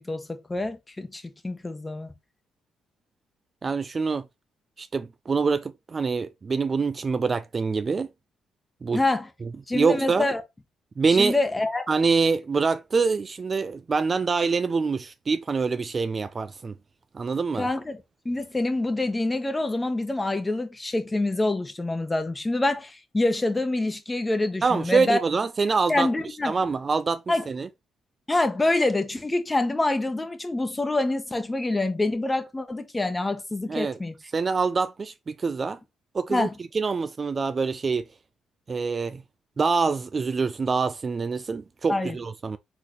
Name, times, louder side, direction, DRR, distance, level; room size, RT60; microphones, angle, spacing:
voice 1, 0.0-2.1 8.9-9.3 9.7-10.4 11.1-11.9 17.6-25.2 25.9-26.5 27.3-27.4 28.3-34.1 36.3-36.5 41.9-42.2, left 2 dB, 15° left, 1.1 m, -26 dB
voice 2, 3.6-4.2 4.8-8.1 8.8-9.0 9.7-10.3 11.0-11.4 11.9-16.7 17.1-17.7 24.6-26.1 26.4-27.7 33.7-34.0 34.3-35.8 36.1-36.5 36.7-38.0 38.7-39.2 39.6-42.6, right 4 dB, 35° right, 0.3 m, -25 dB
4.2 x 4.0 x 3.1 m
cardioid pair, 90°, 0 cm